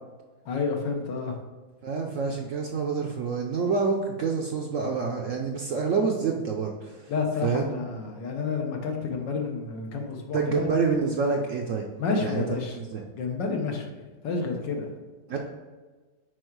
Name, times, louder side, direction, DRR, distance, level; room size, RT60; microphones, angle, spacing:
voice 1, 0.5-1.3 7.1-10.7 12.0-12.8 13.2-13.9 14.2-14.9, left 4 dB, 80° left, 2 dB, 1.7 m, -30 dB
voice 2, 1.8-7.1 7.4-7.7 10.3-11.9 12.2-12.4 12.8-13.0 15.3-15.4, right 5 dB, 65° right, 1 dB, 0.8 m, -27 dB
6.2 x 4.7 x 4.6 m, 1.3 s
omnidirectional pair, 1.9 m